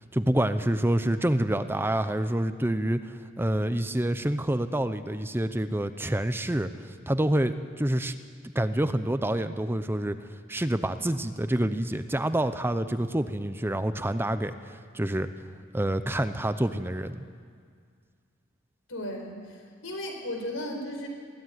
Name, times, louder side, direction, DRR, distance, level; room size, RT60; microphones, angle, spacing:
voice 1, 0.1-8.1 8.5-10.2 10.5-15.3 15.7-17.2, right 1 dB, 10° right, 10 dB, 0.7 m, -27 dB
voice 2, 18.9-21.1, left 1 dB, 80° left, 3 dB, 4.9 m, -35 dB
22.5 x 15.5 x 9.5 m, 2.1 s
head